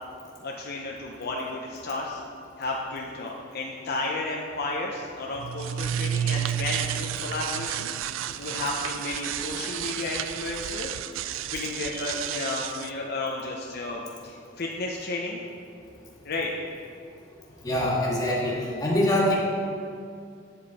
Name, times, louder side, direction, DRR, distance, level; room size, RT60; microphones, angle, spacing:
voice 1, 0.4-2.2 2.6-11.0 11.4-15.4 16.2-16.5, left 2 dB, 55° left, -1 dB, 0.7 m, -33 dB
sound 1, 5.4-12.9, right 10 dB, 75° right, 0.3 m, -31 dB
voice 2, 17.6-19.4, left 1 dB, 20° left, -5 dB, 1.9 m, -24 dB
8.9 x 7.8 x 4.2 m, 2.4 s
head